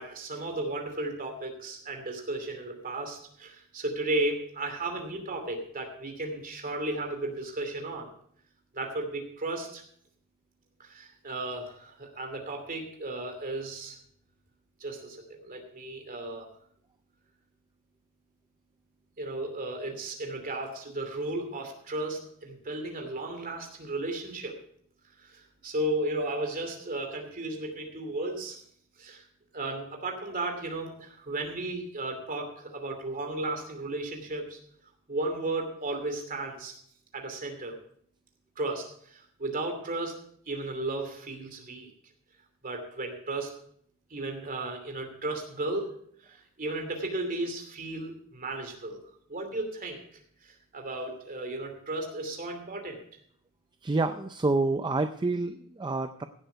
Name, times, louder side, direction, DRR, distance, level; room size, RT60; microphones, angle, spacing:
voice 1, 0.0-8.1 8.7-9.8 10.8-14.0 14.8-16.5 19.2-24.6 25.2-28.6 29.0-29.2 29.5-34.6 35.1-36.7 37.1-37.8 38.6-40.2 40.5-41.9 42.6-43.5 44.1-45.9 46.2-49.0 49.3-50.0 50.4-53.0, right 2 dB, 40° right, 3 dB, 2.7 m, -34 dB
voice 2, 53.8-56.2, right 3 dB, 20° right, 8 dB, 0.5 m, -28 dB
16.5 x 7.9 x 4.6 m, 0.64 s
head